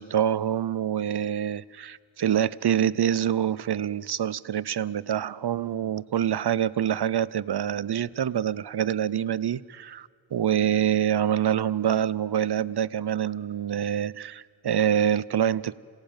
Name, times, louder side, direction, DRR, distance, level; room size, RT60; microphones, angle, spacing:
voice 1, 0.0-15.8, right 9 dB, 55° right, 0.7 m, -26 dB
27.5 x 18.0 x 8.9 m
cardioid pair, 50°, 47 cm